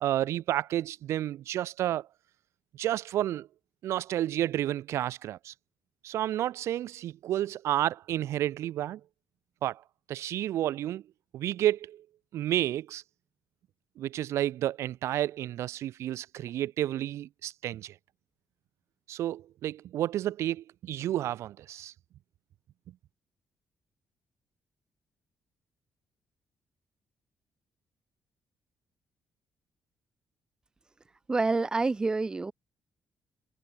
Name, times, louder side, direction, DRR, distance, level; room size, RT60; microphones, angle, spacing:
voice 1, 0.0-2.1 2.7-3.5 3.8-5.5 6.0-9.0 9.6-9.8 10.1-11.0 11.3-12.0 12.3-13.0 14.0-17.9 19.1-21.9, right 12 dB, 75° right, 1.4 m, -31 dB
voice 2, 31.3-32.5, right 3 dB, 15° right, 1.0 m, -27 dB
cardioid pair, 170°, 5 cm